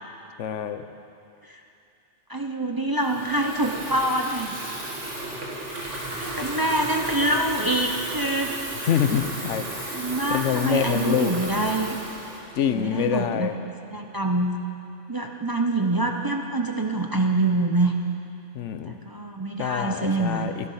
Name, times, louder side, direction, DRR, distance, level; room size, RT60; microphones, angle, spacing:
voice 1, 0.4-0.9 8.8-11.4 12.5-13.5 18.5-18.9 19.6-20.7, left 8 dB, 85° left, 10 dB, 1.1 m, -26 dB
voice 2, 2.3-4.6 5.6-5.8 6.2-8.5 9.8-12.0 12.7-13.5 13.9-14.6 15.1-17.9 18.8-20.7, right 2 dB, 25° right, 2 dB, 0.6 m, -25 dB
Water tap faucet / Fill (with liquid), 3.0-13.2, right 1 dB, 80° right, 2.5 m, -34 dB
15.5 x 12.5 x 5.6 m, 2.6 s
omnidirectional pair, 1.2 m